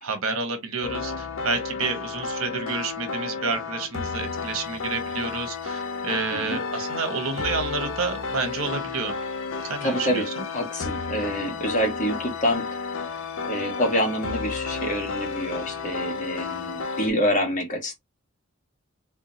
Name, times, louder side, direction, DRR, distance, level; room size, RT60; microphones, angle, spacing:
voice 1, 0.0-9.1 9.7-10.2, right 4 dB, 75° right, 1.2 m, -29 dB
sound 1, 0.8-17.1, left 4 dB, 65° left, 0.7 m, -32 dB
voice 2, 9.8-12.7 13.4-17.9, equal, 35° left, 1.3 m, -27 dB
3.6 x 3.6 x 2.8 m
head